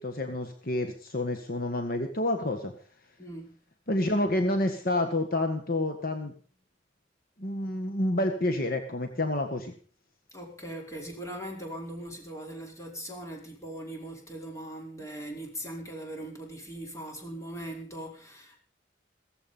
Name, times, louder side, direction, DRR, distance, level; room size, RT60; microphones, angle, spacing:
voice 1, 0.0-2.7 3.9-6.3 7.4-9.7, left 1 dB, 50° left, 6 dB, 1.7 m, -29 dB
voice 2, 3.2-3.6 10.3-18.6, right 1 dB, 15° left, 1 dB, 4.8 m, -40 dB
16.5 x 15.0 x 5.6 m, 0.42 s
head